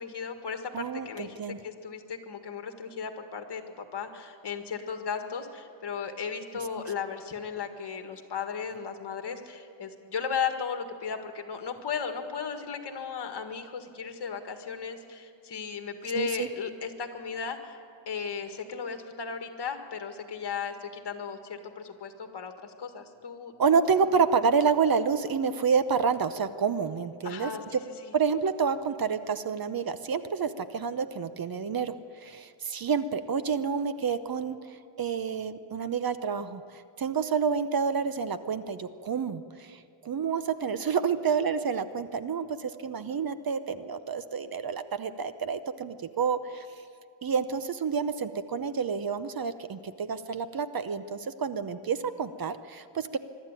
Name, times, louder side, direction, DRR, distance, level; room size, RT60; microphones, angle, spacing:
voice 1, 0.0-23.5 23.9-24.0 27.2-28.1, left 6 dB, 55° left, 6 dB, 1.9 m, -36 dB
voice 2, 0.7-1.6 16.1-16.5 23.6-27.8 28.1-31.9 32.2-46.7 47.2-53.2, right 6 dB, 45° right, 12 dB, 0.8 m, -29 dB
23.5 x 12.5 x 9.0 m, 2.3 s
wide cardioid pair, 130°, 49 cm